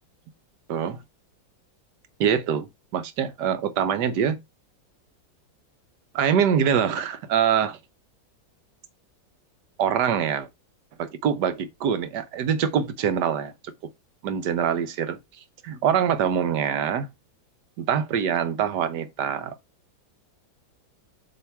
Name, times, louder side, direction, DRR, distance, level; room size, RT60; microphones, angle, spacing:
voice 1, 0.7-1.0 2.2-4.4 6.1-7.8 9.8-10.5 11.0-13.7 14.2-15.2 15.6-17.1 17.8-19.5, right 8 dB, 65° right, 1.3 m, -24 dB
7.7 x 3.1 x 4.5 m
omnidirectional pair, 2.1 m